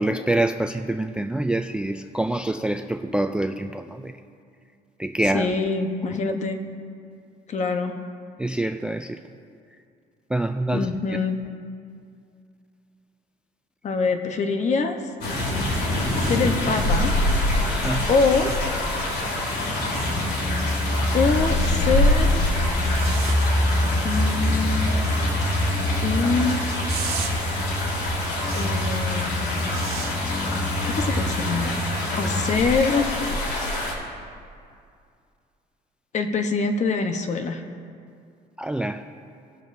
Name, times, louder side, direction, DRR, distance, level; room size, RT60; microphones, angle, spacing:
voice 1, 0.0-4.1 5.0-5.5 8.4-9.2 10.3-10.9 17.7-18.1 32.2-32.3 33.5-33.6 38.6-39.0, right 1 dB, 5° right, 8 dB, 0.3 m, -26 dB
voice 2, 5.3-6.6 7.5-8.0 10.7-11.4 13.8-15.0 16.2-17.1 18.1-18.6 21.1-22.4 24.0-24.9 26.0-26.6 28.5-29.3 30.8-31.8 32.2-33.2 36.1-37.6, left 4 dB, 45° left, 6 dB, 1.0 m, -24 dB
sound 1, 15.2-33.9, left 1 dB, 80° left, 2.4 m, -26 dB
sound 2, 16.1-16.4 18.2-18.6 19.9-20.1 22.9-23.4 26.9-27.3 28.5-28.7 29.7-30.1 31.6-31.7, right 8 dB, 70° right, 1.6 m, -35 dB
sound 3, 20.0-32.6, equal, 20° left, 1.3 m, -26 dB
19.5 x 7.3 x 2.6 m, 2.4 s
cardioid pair, 110°, 17 cm